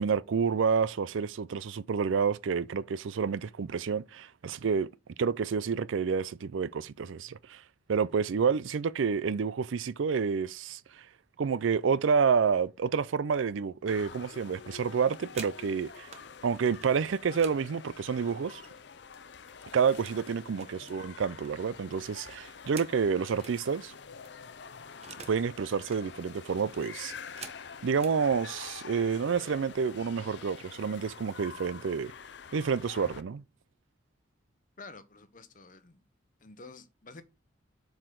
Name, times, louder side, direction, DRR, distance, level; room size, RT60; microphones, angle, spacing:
voice 1, 0.0-4.9 5.2-7.6 7.9-11.0 11.4-16.1 16.4-18.6 19.7-23.9 25.3-27.1 27.8-32.1 32.5-33.4, right 6 dB, 85° right, 0.4 m, -29 dB
sound 1, 13.9-33.2, left 6 dB, 60° left, 0.5 m, -47 dB
sound 2, 15.3-16.3 16.7-19.0 19.3-20.2 20.5-23.6 24.0-24.1 24.2-25.5 25.7-26.1 26.6-28.2 29.0-29.2 29.5-29.9 30.2-30.7, right 5 dB, 35° right, 1.0 m, -49 dB
voice 2, 20.6-20.9 34.8-36.0 36.4-37.2, left 3 dB, 40° left, 0.9 m, -50 dB
7.6 x 4.8 x 3.8 m
head